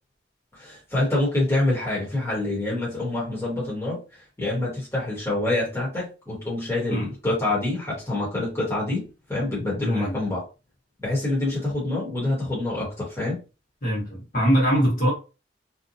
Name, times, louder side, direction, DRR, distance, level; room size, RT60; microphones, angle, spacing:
voice 1, 0.6-4.0 4.4-9.0 9.3-10.4 11.0-13.4, left 2 dB, 15° left, 1.1 m, -26 dB
voice 2, 9.8-10.2 13.8-15.1, equal, 50° left, 1.4 m, -22 dB
2.7 x 2.2 x 2.7 m
head